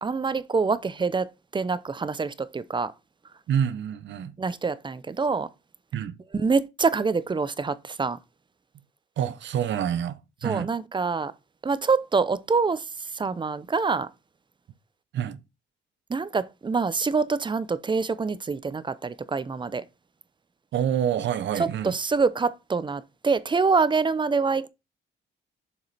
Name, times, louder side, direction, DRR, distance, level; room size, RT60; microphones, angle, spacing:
voice 1, 0.0-2.9 4.4-5.5 6.3-8.2 10.4-11.3 11.6-12.8 13.1-14.1 16.1-19.8 21.6-24.7, right 4 dB, 25° right, 0.6 m, -25 dB
voice 2, 3.5-4.3 5.9-6.1 9.2-10.7 15.1-15.4 20.7-22.0, right 9 dB, 65° right, 0.8 m, -27 dB
7.3 x 5.0 x 4.1 m
cardioid pair, 90°, 20 cm